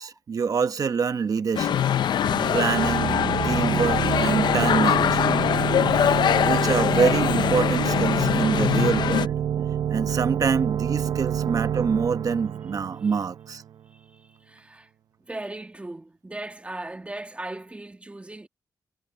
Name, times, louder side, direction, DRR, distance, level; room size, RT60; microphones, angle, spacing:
voice 1, 0.0-1.8 2.5-3.1 3.4-5.4 5.9-9.3 9.9-13.6, right 5 dB, 55° right, 1.0 m, -26 dB
sound 1, 1.5-9.3, left 9 dB, 85° left, 0.6 m, -23 dB
sound 2, 2.2-13.8, right 9 dB, 90° right, 0.9 m, -28 dB
voice 2, 13.8-14.9 15.2-18.5, right 2 dB, 15° right, 2.2 m, -38 dB
wide cardioid pair, 115°, 7 cm